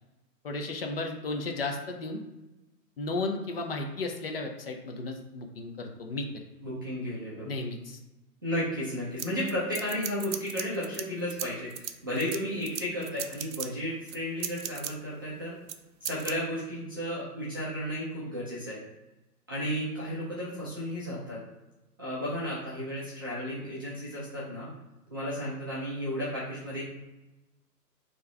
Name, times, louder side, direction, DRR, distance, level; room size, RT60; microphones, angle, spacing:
voice 1, 0.4-2.2 3.0-6.4 7.4-8.0, left 2 dB, 40° left, 3 dB, 0.5 m, -34 dB
voice 2, 6.6-7.5 8.4-15.6 16.0-18.8 19.5-21.4 22.0-24.7 25.1-26.8, equal, 15° right, -11 dB, 0.4 m, -33 dB
sound 1, 9.2-11.0 11.3-13.7 14.1-14.9 15.7-15.8 16.0-16.3, right 9 dB, 90° right, 0.6 m, -36 dB
4.5 x 2.9 x 3.2 m, 1.0 s
hypercardioid pair, 140°, 50 cm